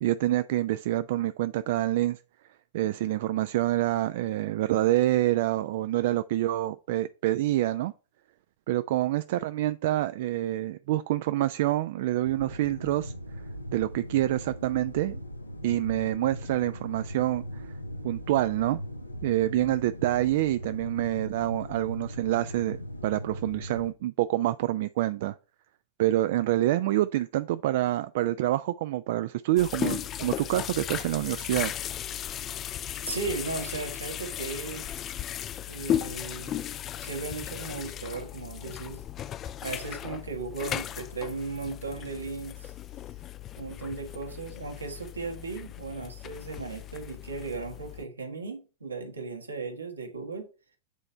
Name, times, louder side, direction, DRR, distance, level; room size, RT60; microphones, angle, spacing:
voice 1, 0.0-2.2 2.7-7.9 8.7-13.1 13.7-15.2 15.6-17.7 18.0-18.8 19.2-25.3 26.0-31.7, right 14 dB, 55° right, 0.3 m, -27 dB
sound 1, 12.2-23.9, equal, 85° left, 0.8 m, -39 dB
sound 2, 29.6-48.0, left 10 dB, 30° left, 0.3 m, -36 dB
voice 2, 33.1-34.9 35.7-36.6 37.0-39.0 39.6-42.7 43.6-50.5, right 4 dB, 80° right, 1.6 m, -36 dB
8.1 x 4.3 x 5.0 m
figure-of-eight pair, 90°, 0 cm